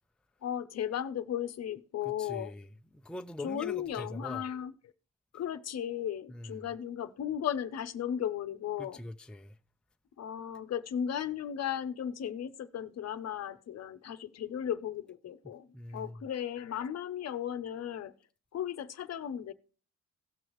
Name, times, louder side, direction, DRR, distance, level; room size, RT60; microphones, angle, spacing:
voice 1, 0.4-2.5 3.4-4.7 5.3-9.0 10.2-15.7 15.9-18.1 18.5-19.5, left 9 dB, 55° left, 0.8 m, -35 dB
voice 2, 2.1-2.7 2.9-4.4 6.3-6.5 8.8-9.5 15.7-16.2, left 1 dB, 5° left, 0.5 m, -42 dB
17.0 x 6.3 x 3.0 m
cardioid pair, 90°, 30 cm